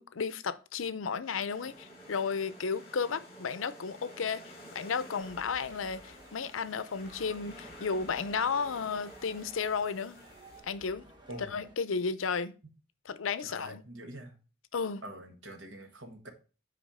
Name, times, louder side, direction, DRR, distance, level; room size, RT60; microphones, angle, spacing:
voice 1, 0.0-4.4 4.7-10.2 10.6-11.1 11.5-12.5 13.1-13.8 14.7-15.0, left 5 dB, 80° left, 0.6 m, -33 dB
sound 1, 1.2-10.6, equal, 30° left, 4.7 m, -51 dB
sound 2, 5.2-11.7, right 1 dB, 20° right, 1.5 m, -55 dB
voice 2, 13.4-14.3 15.0-16.3, right 1 dB, 65° right, 1.6 m, -45 dB
8.5 x 4.8 x 4.9 m
head